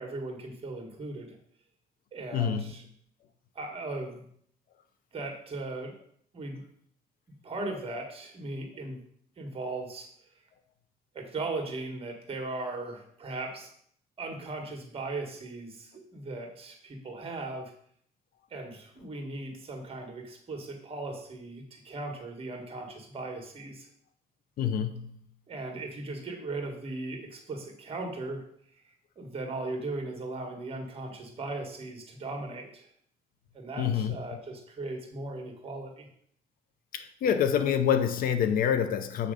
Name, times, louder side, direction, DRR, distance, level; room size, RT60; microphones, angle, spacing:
voice 1, 0.0-1.4 2.1-2.8 3.6-4.2 5.1-5.9 6.3-6.6 7.4-9.0 9.4-10.1 11.1-13.7 14.2-17.7 18.5-23.9 25.5-28.4 28.8-32.9 33.5-36.1, right 2 dB, 35° right, 1.6 m, -38 dB
voice 2, 2.3-2.7 24.6-25.2 33.8-34.2 36.9-39.3, left 8 dB, 55° left, 0.6 m, -27 dB
7.4 x 3.3 x 5.1 m
cardioid pair, 110°, 17 cm